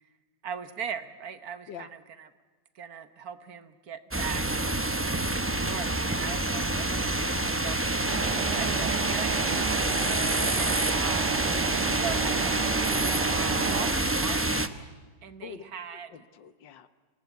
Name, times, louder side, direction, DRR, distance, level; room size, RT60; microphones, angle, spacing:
voice 1, 0.4-2.3 2.7-4.7 5.0-9.8 10.4-11.3 11.9-14.6 15.2-16.3, right 7 dB, 60° right, 11 dB, 1.5 m, -40 dB
sound 1, 4.1-14.7, right 2 dB, 20° right, 0.4 m, -27 dB
Truck, 8.1-13.9, right 10 dB, 75° right, 1.6 m, -33 dB
voice 2, 9.1-9.5 15.4-15.6 15.9-16.9, left 8 dB, 85° left, 12 dB, 1.8 m, -45 dB
26.5 x 18.5 x 8.4 m, 1.3 s
omnidirectional pair, 1.9 m